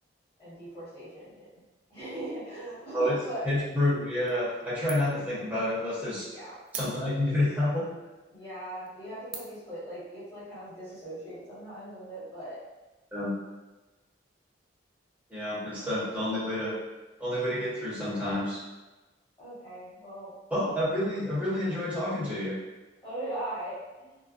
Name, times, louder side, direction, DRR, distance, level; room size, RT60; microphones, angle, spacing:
voice 1, 0.4-1.4 1.9-3.5 6.3-6.6 8.3-12.6 15.6-15.7 19.4-20.3 23.0-24.2, right 1 dB, 25° left, -12 dB, 1.2 m, -39 dB
voice 2, 3.4-6.3 6.7-7.9 13.1-13.3 15.3-16.7 17.2-18.6 20.5-22.6, left 1 dB, 10° right, -10 dB, 0.7 m, -29 dB
sound 1, 4.3-4.6 4.9-5.3 5.7-5.8 6.7-7.4 8.0-8.1 8.7-8.9 9.3-9.7, right 6 dB, 60° right, 0.3 m, -41 dB
2.4 x 2.1 x 2.5 m, 1.1 s
head